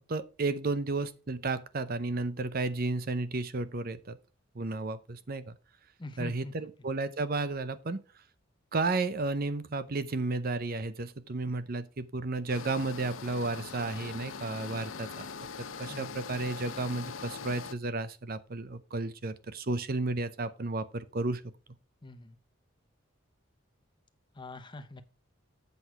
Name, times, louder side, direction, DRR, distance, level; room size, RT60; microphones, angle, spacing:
voice 1, 0.1-4.2 4.5-5.6 6.2-8.0 8.7-21.4, right 3 dB, 45° right, 0.7 m, -33 dB
voice 2, 6.0-6.7 15.9-16.2 22.0-22.4 24.3-25.0, left 2 dB, 25° left, 0.8 m, -43 dB
sound 1, 12.5-17.7, left 5 dB, 80° left, 0.6 m, -42 dB
8.0 x 6.3 x 4.7 m
head